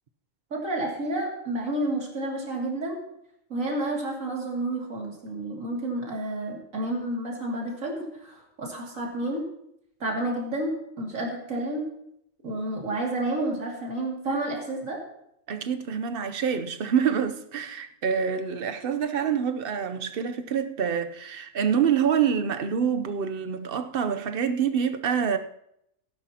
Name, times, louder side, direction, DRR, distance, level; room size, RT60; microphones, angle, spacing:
voice 1, 0.5-3.0 3.5-9.5 10.0-11.9 12.4-15.0, right 1 dB, 85° right, 2.9 m, -30 dB
voice 2, 15.5-25.4, right 7 dB, 50° right, 0.9 m, -26 dB
18.0 x 10.0 x 2.9 m
omnidirectional pair, 1.3 m